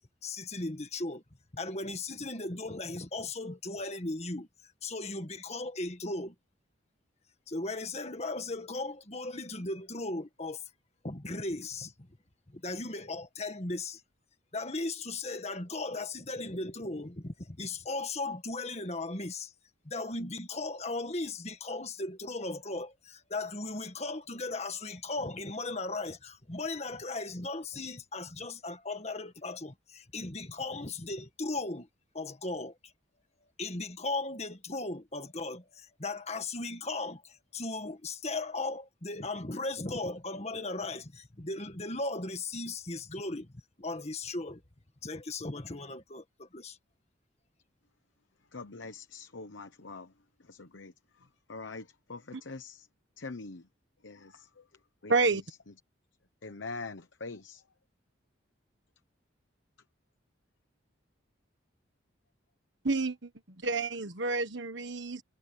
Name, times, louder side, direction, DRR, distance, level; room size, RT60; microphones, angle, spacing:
voice 1, 0.2-1.2 1.5-4.5 4.8-6.3 7.5-10.6 11.0-12.1 12.5-14.0 14.5-19.5 19.9-31.9 32.1-32.7 33.6-44.6 45.0-46.8, left 2 dB, 35° left, 1.8 m, -37 dB
voice 2, 48.5-50.1 50.5-50.9 51.5-52.9 53.2-53.7 54.0-54.6 55.0-55.4 56.4-57.6, left 3 dB, 70° left, 1.0 m, -43 dB
voice 3, 55.1-55.4 62.8-63.3 63.6-65.2, right 3 dB, 65° right, 1.5 m, -29 dB
head